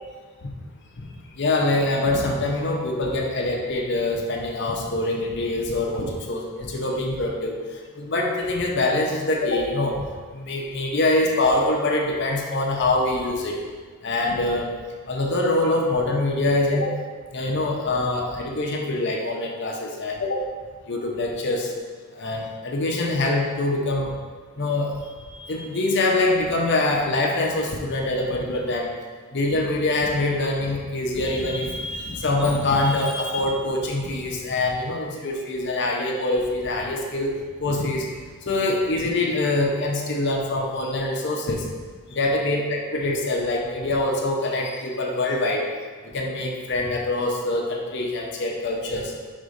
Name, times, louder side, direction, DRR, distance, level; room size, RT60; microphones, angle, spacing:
voice 1, 1.4-7.6 8.0-10.0 10.3-13.6 14.0-14.7 15.1-16.9 17.3-20.4 20.9-21.7 22.1-24.1 24.6-24.9 25.3-28.9 29.3-37.3 37.6-38.1 38.5-41.7 42.1-45.7 46.1-49.1, left 2 dB, 50° left, 0 dB, 0.7 m, -24 dB
5.2 x 3.6 x 5.1 m, 1.5 s
head